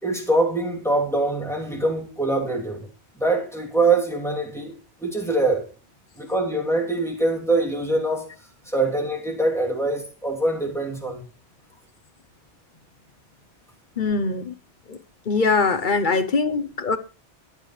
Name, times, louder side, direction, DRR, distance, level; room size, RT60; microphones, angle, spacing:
voice 1, 0.0-2.9 3.2-4.7 5.0-5.7 6.2-8.3 8.6-11.2, right 2 dB, ahead, 3.0 m, -23 dB
voice 2, 14.0-14.5 14.9-15.0 15.3-17.0, left 4 dB, 50° left, 1.0 m, -22 dB
22.0 x 8.3 x 3.3 m
omnidirectional pair, 1.2 m